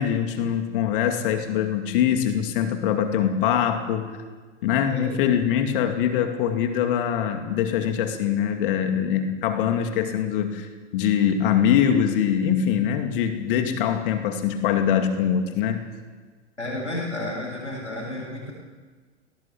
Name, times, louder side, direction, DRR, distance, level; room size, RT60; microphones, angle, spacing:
voice 1, 0.0-4.1 4.6-15.8, left 9 dB, 50° left, 6 dB, 2.4 m, -23 dB
voice 2, 16.6-18.5, left 1 dB, 85° left, -6 dB, 7.8 m, -31 dB
18.5 x 18.5 x 8.6 m, 1.4 s
figure-of-eight pair, 90°, 35 cm